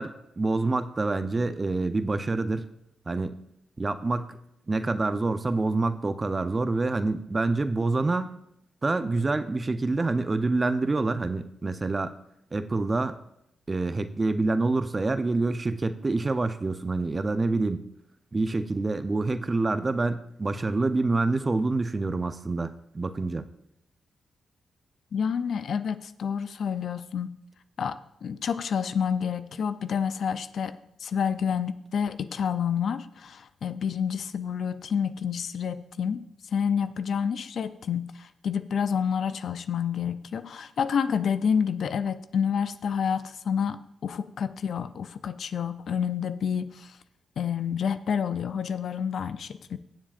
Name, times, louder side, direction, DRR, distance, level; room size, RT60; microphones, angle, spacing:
voice 1, 0.0-2.7 3.1-3.4 3.8-4.4 4.7-8.3 8.8-12.1 12.5-13.1 13.7-17.8 18.3-23.4, right 3 dB, 35° right, 11 dB, 0.7 m, -27 dB
voice 2, 25.1-27.4 27.8-36.2 36.5-46.9 47.4-49.8, left 7 dB, 70° left, 12 dB, 0.5 m, -29 dB
22.0 x 7.3 x 2.5 m, 0.79 s
supercardioid pair, 55°, 0 cm